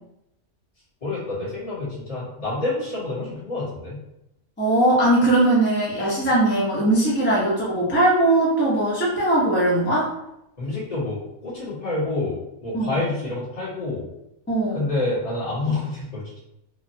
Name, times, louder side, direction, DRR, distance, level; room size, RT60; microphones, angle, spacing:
voice 1, 1.0-4.0 10.6-14.1 14.7-16.4, left 2 dB, 25° left, -9 dB, 1.2 m, -28 dB
voice 2, 4.6-10.1 12.7-13.0 14.5-14.8, right 1 dB, 10° left, -7 dB, 0.6 m, -20 dB
3.1 x 2.1 x 2.7 m, 0.85 s
omnidirectional pair, 1.6 m